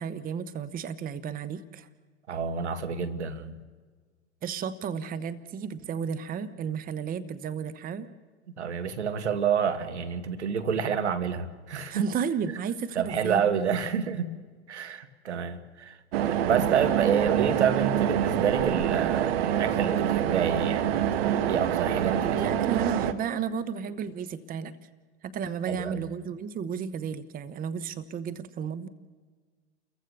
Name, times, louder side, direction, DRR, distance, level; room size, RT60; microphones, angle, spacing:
voice 1, 0.0-1.9 4.4-8.1 11.9-13.4 22.3-24.8 25.2-28.9, right 7 dB, 25° right, 1.0 m, -33 dB
voice 2, 2.3-3.6 8.6-12.0 12.5-12.6 13.0-14.3 14.7-16.0 16.2-22.8 25.7-26.0, right 7 dB, 80° right, 1.8 m, -29 dB
sound 1, 16.1-23.1, right 10 dB, 60° right, 1.4 m, -26 dB
30.0 x 15.0 x 6.9 m
hypercardioid pair, 95°, 34 cm